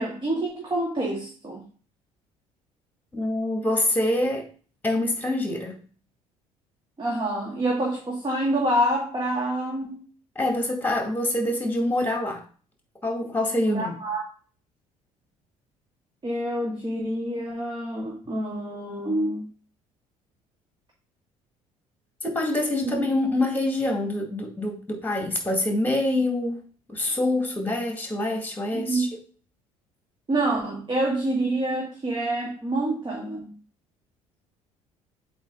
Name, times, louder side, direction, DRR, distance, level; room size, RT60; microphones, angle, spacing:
voice 1, 0.0-1.6 7.0-10.1 13.7-14.2 16.2-19.5 22.8-23.0 28.7-29.1 30.3-33.5, right 1 dB, 25° right, -2 dB, 1.9 m, -27 dB
voice 2, 3.1-4.5 4.8-5.8 10.4-12.4 13.0-13.9 22.2-29.1, left 1 dB, 10° left, 2 dB, 2.2 m, -25 dB
8.0 x 3.3 x 3.9 m, 0.40 s
figure-of-eight pair, 55°, 18 cm